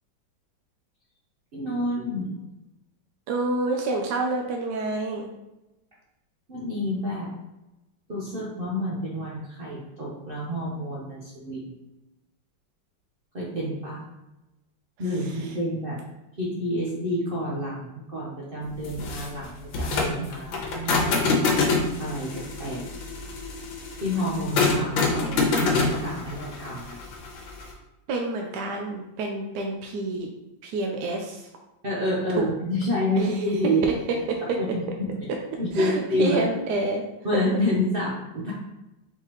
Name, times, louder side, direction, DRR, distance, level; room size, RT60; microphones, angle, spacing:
voice 1, 1.5-2.3 6.5-7.3 8.1-11.8 13.3-14.1 15.0-16.0 16.4-21.3 22.0-22.9 24.0-27.0 31.8-33.8 34.6-35.3 35.6-36.4 37.2-38.5, equal, 50° right, -6 dB, 0.6 m, -28 dB
voice 2, 3.3-5.3 28.1-30.3 30.6-31.5 33.2-33.3 34.3-34.4 35.8-37.0, right 2 dB, 70° right, 2 dB, 1.0 m, -28 dB
sound 1, 18.8-27.7, left 3 dB, 85° left, 1.6 m, -26 dB
4.5 x 3.6 x 2.9 m, 0.98 s
omnidirectional pair, 2.0 m